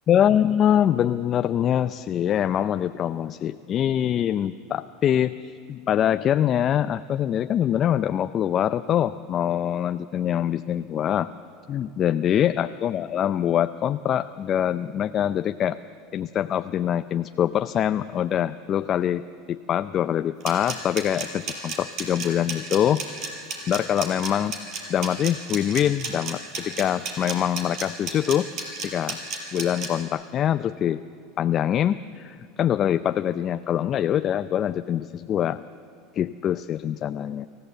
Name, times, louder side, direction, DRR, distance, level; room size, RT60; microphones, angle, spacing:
voice 1, 0.1-11.3 11.7-15.8 16.1-19.2 19.5-23.3 23.7-24.5 24.9-28.5 28.8-29.2 29.5-31.0 31.4-35.6 36.1-37.5, left 10 dB, 40° left, 11 dB, 0.5 m, -24 dB
sound 1, 20.4-29.9, right 4 dB, 55° right, 5.0 m, -32 dB
24.5 x 14.5 x 8.0 m, 2.2 s
hypercardioid pair, 100°, 0 cm